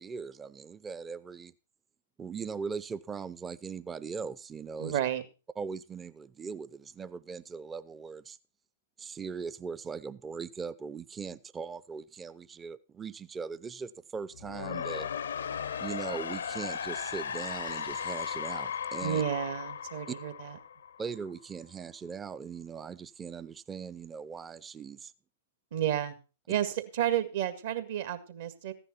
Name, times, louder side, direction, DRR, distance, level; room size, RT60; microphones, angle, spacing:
voice 1, 0.0-1.5 2.2-5.0 5.6-8.4 9.0-15.1 15.8-19.2 20.1-20.2 21.0-25.1, right 5 dB, 15° right, 0.6 m, -40 dB
voice 2, 4.8-5.2 19.0-20.6 25.7-26.2 26.5-28.7, right 10 dB, 60° right, 1.8 m, -31 dB
sound 1, 14.3-21.3, left 7 dB, 75° left, 0.7 m, -36 dB
14.5 x 10.0 x 4.3 m
hypercardioid pair, 110°, 0 cm